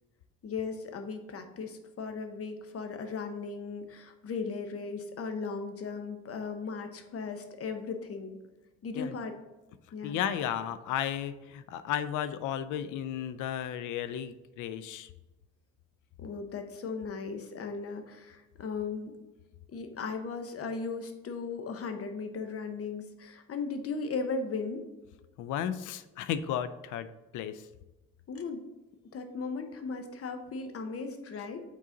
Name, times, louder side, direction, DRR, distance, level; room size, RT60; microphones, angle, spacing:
voice 1, 0.4-8.4 8.8-9.3 9.9-10.2 16.2-19.1 19.7-24.8 28.3-28.7 29.1-31.6, left 4 dB, 50° left, 6 dB, 0.8 m, -37 dB
voice 2, 10.0-15.1 25.4-27.6, left 9 dB, 85° left, 14 dB, 0.5 m, -34 dB
6.4 x 3.9 x 3.8 m, 1.1 s
cardioid pair, 90°, 30 cm